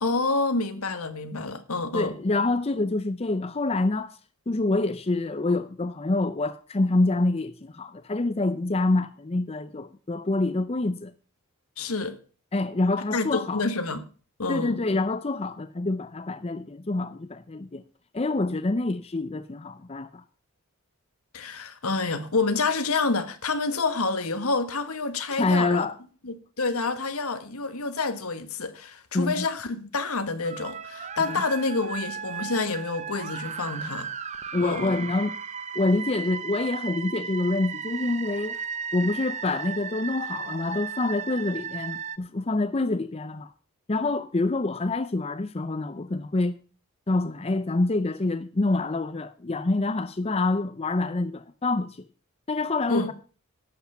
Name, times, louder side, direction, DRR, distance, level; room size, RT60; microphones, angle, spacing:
voice 1, 0.0-2.1 11.8-12.2 13.1-14.1 14.4-14.8 21.3-25.9 26.2-34.1 34.6-35.0 52.9-53.1, left 3 dB, 80° left, 1.4 m, -28 dB
voice 2, 1.9-4.1 4.5-11.1 12.5-13.6 14.5-17.8 18.1-20.2 25.3-26.0 29.1-29.5 31.2-31.4 34.5-35.4 35.7-38.6 38.9-43.5 43.9-46.6 47.1-52.0 52.5-53.1, left 2 dB, 25° left, 0.5 m, -26 dB
sound 1, 30.4-42.2, right 6 dB, 30° right, 0.8 m, -35 dB
11.5 x 8.2 x 5.6 m
head